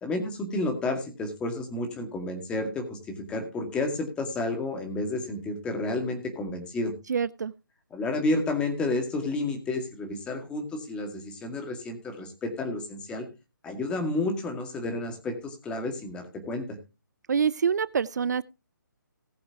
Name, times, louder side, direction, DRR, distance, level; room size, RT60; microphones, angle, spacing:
voice 1, 0.0-3.0 3.3-6.9 7.9-13.3 13.6-16.7, left 2 dB, 10° left, 4 dB, 2.1 m, -31 dB
voice 2, 7.1-7.5 17.3-18.4, right 6 dB, 55° right, 19 dB, 0.5 m, -26 dB
19.0 x 7.8 x 2.9 m, 0.27 s
hypercardioid pair, 160°, 11 cm